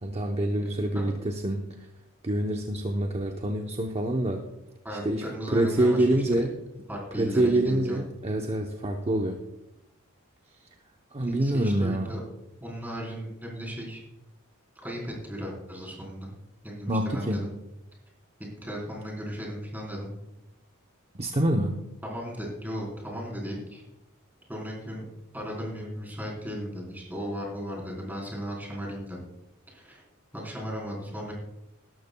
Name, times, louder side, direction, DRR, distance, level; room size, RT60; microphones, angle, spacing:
voice 1, 0.0-1.7 2.2-4.5 5.0-6.5 7.1-9.4 11.1-12.1 16.9-17.4 21.2-21.8, right 1 dB, 30° right, 3 dB, 0.8 m, -26 dB
voice 2, 4.8-6.5 6.9-8.0 11.2-12.2 12.6-14.0 14.8-16.3 16.6-17.5 18.6-20.1 22.0-23.8 24.5-25.1 25.3-29.2 29.7-30.0 30.3-31.3, equal, 10° right, -3 dB, 3.9 m, -36 dB
19.0 x 12.0 x 2.3 m, 0.90 s
head